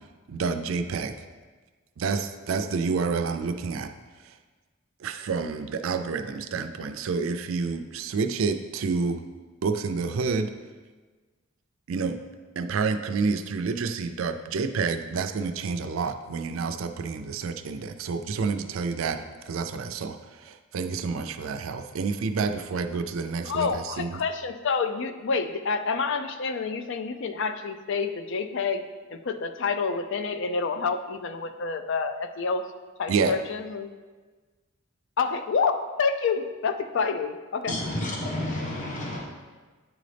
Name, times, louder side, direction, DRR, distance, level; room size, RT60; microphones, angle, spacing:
voice 1, 0.3-1.2 2.0-3.9 4.2-4.3 5.0-9.2 9.6-10.5 11.9-12.2 12.6-24.2 33.1-33.4, right 4 dB, 70° right, 8 dB, 0.4 m, -29 dB
voice 2, 23.5-28.8 29.1-32.6 33.0-33.9 35.2-37.8, left 5 dB, 60° left, 9 dB, 0.4 m, -28 dB
voice 3, 37.7-39.2, left 1 dB, 35° left, -3 dB, 1.1 m, -30 dB
9.2 x 3.9 x 3.3 m, 1.4 s
head